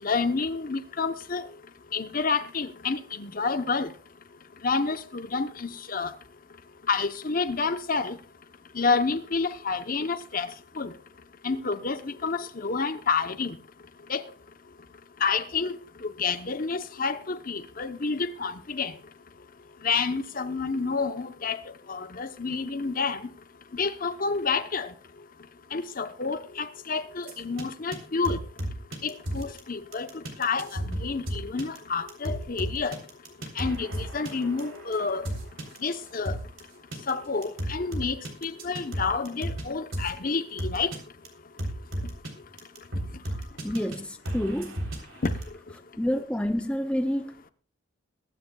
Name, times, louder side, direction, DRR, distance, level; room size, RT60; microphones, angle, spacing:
voice 1, 0.0-1.5 1.9-3.9 4.6-6.1 6.9-8.2 8.7-10.5 10.8-10.9 11.4-13.6 14.1-14.2 15.2-15.7 16.0-18.9 19.8-21.6 21.9-23.2 23.8-24.9 25.7-28.4 29.0-32.9 33.6-35.3 35.8-36.3 37.1-40.9, left 4 dB, 45° left, 0.9 m, -29 dB
sound 1, 27.2-27.6 27.9-28.0 28.2-29.6 29.9-36.6 36.9-37.1 37.4-39.6 39.9-40.1 40.6-41.0 41.2-41.3 41.6-42.3 42.6-44.0 44.3-45.5, right 1 dB, 75° right, 3.6 m, -33 dB
voice 2, 43.6-44.8 46.0-47.5, equal, 5° left, 0.5 m, -28 dB
22.0 x 10.5 x 2.3 m
head